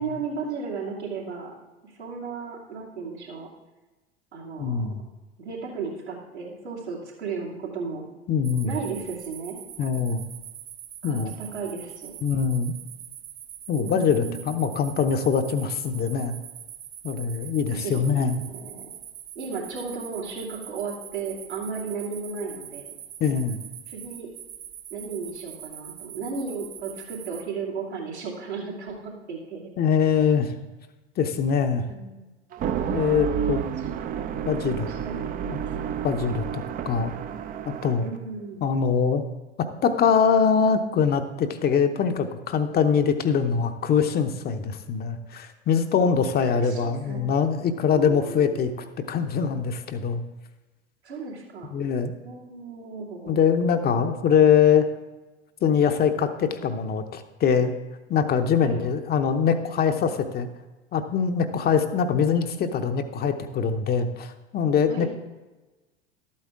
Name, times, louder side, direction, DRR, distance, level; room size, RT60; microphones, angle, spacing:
voice 1, 0.0-1.5 1.8-3.5 4.3-4.9 5.4-8.1 8.6-9.6 11.0-12.1 13.8-14.5 17.7-18.1 18.4-18.9 19.3-22.9 23.9-24.3 24.9-29.7 31.9-32.2 33.7-34.0 34.9-35.7 38.0-38.6 46.4-47.2 47.8-48.6 51.0-51.7 52.2-53.4 58.6-58.8 64.9-65.1, right 5 dB, 80° right, -5 dB, 2.6 m, -35 dB
voice 2, 4.6-5.0 8.3-8.7 9.8-10.3 11.0-11.4 12.2-12.7 13.7-16.4 17.0-18.4 23.2-23.6 29.8-30.5 31.2-31.9 32.9-33.6 34.4-34.9 35.4-35.6 36.0-37.1 37.7-38.1 38.6-39.2 39.8-48.7 49.1-50.2 51.7-52.1 53.3-54.9 55.6-57.7 58.1-60.5 60.9-65.1, left 6 dB, 30° left, 8 dB, 0.8 m, -23 dB
sound 1, 8.4-27.5, right 10 dB, 65° right, 1.0 m, -43 dB
sound 2, 32.5-38.1, right 9 dB, 25° right, 0.5 m, -30 dB
12.0 x 8.5 x 3.6 m, 1.2 s
figure-of-eight pair, 80°, 33 cm